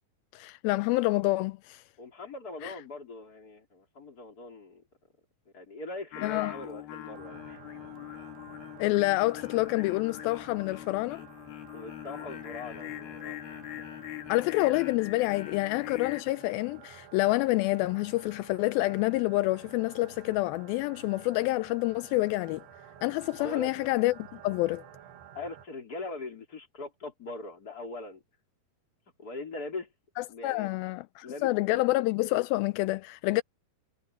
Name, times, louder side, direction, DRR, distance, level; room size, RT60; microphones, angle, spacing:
voice 1, 0.3-1.8 2.6-2.7 6.2-6.5 8.8-11.3 14.3-22.6 23.0-24.8 30.2-33.4, left 19 dB, 85° left, 2.1 m, -28 dB
voice 2, 2.0-4.8 5.5-7.6 11.7-13.4 13.8-13.9 23.4-23.7 25.3-28.2 29.2-29.9 30.3-30.7 31.2-31.8, left 3 dB, 25° left, 4.1 m, -41 dB
Singing, 6.1-16.2, left 13 dB, 70° left, 3.2 m, -42 dB
sound 1, 7.1-25.7, right 9 dB, 75° right, 3.9 m, -52 dB
omnidirectional pair, 4.7 m